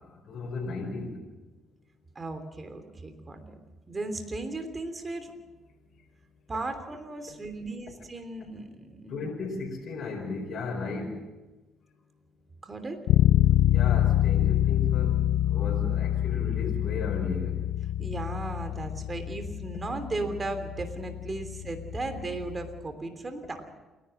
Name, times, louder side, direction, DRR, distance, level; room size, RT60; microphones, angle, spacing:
voice 1, 0.3-1.2 9.1-11.2 13.6-15.2 15.5-17.5, left 3 dB, 65° left, -1 dB, 4.8 m, -35 dB
voice 2, 2.1-3.4 3.9-5.3 6.5-9.2 12.6-13.0 18.0-23.8, right 2 dB, 30° right, 8 dB, 3.1 m, -36 dB
Bass guitar, 13.1-22.8, left 12 dB, 80° left, 0.6 m, -26 dB
29.0 x 11.5 x 7.8 m, 1.1 s
supercardioid pair, 65°, 0 cm